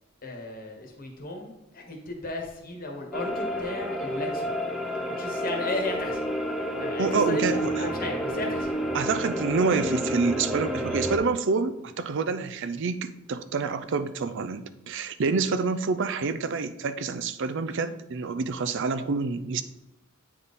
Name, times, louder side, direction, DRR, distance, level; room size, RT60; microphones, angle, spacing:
voice 1, 0.2-4.5 5.2-6.2 6.8-8.7, left 2 dB, 45° left, 1 dB, 1.2 m, -34 dB
sound 1, 3.1-11.2, equal, ahead, 0.5 m, -30 dB
voice 2, 7.0-7.9 8.9-19.6, right 4 dB, 60° right, 12 dB, 0.5 m, -27 dB
8.5 x 3.6 x 4.1 m, 0.90 s
head